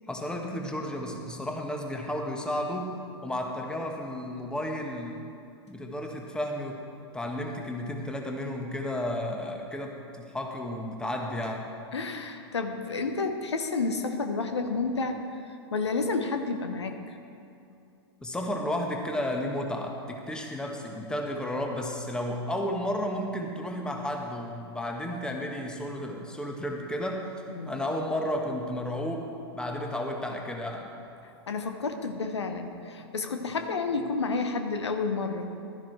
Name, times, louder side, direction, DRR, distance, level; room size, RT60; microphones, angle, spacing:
voice 1, 0.1-5.3 5.7-6.8 7.1-11.7 18.2-27.3 27.7-30.9, left 1 dB, 5° left, 1 dB, 1.3 m, -32 dB
voice 2, 11.9-15.2 15.7-17.2 27.5-27.8 31.5-35.5, left 4 dB, 80° left, 6 dB, 1.1 m, -30 dB
15.5 x 12.5 x 3.3 m, 2.5 s
hypercardioid pair, 105°, 14 cm